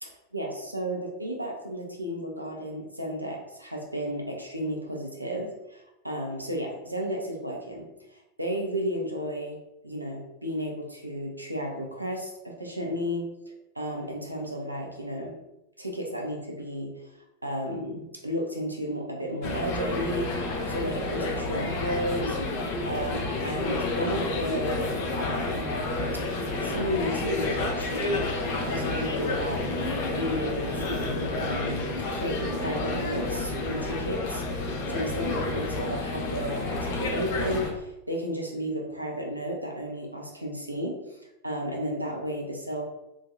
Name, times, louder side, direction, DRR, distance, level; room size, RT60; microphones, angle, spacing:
voice 1, 0.0-9.6 9.8-15.4 15.8-17.1 17.4-20.3 20.7-22.4 22.9-24.8 25.1-25.8 26.6-28.3 28.5-42.8, equal, 85° right, 0 dB, 0.5 m, -33 dB
sound 1, 19.4-37.7, left 2 dB, 50° left, 0.5 m, -30 dB
2.8 x 2.2 x 2.4 m, 0.88 s
figure-of-eight pair, 90°, 0 cm